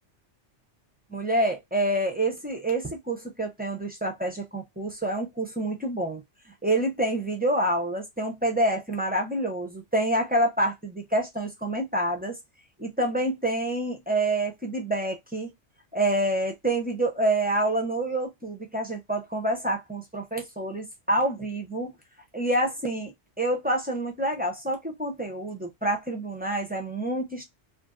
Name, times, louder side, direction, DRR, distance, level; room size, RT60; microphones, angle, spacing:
voice 1, 1.1-6.2 6.6-12.4 12.8-15.5 15.9-21.9 22.3-23.1 23.4-27.4, right 1 dB, 15° right, 0.3 m, -27 dB
2.7 x 2.5 x 2.3 m
omnidirectional pair, 1.2 m